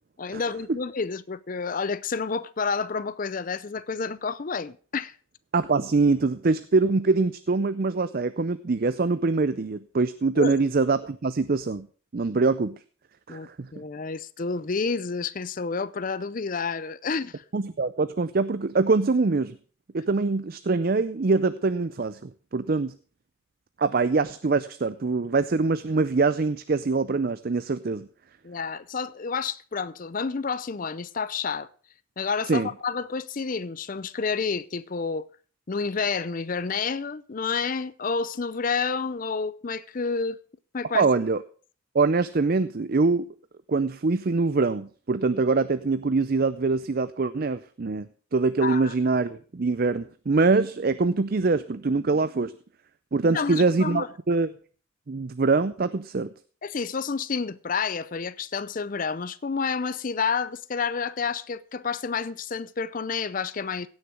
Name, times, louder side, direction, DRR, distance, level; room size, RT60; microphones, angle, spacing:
voice 1, 0.2-5.1 10.4-10.5 13.3-17.4 28.4-31.7 32.2-35.3 35.7-40.4 40.7-41.1 48.6-48.9 53.3-54.1 56.6-63.9, left 5 dB, 40° left, 0.5 m, -29 dB
voice 2, 5.5-11.9 12.1-12.8 13.3-13.7 17.5-19.6 19.9-22.9 23.8-28.1 32.5-32.7 40.9-41.4 41.9-43.3 43.7-52.5 53.1-54.5 55.1-56.3, right 3 dB, 45° right, 0.5 m, -24 dB
16.5 x 6.5 x 6.1 m
head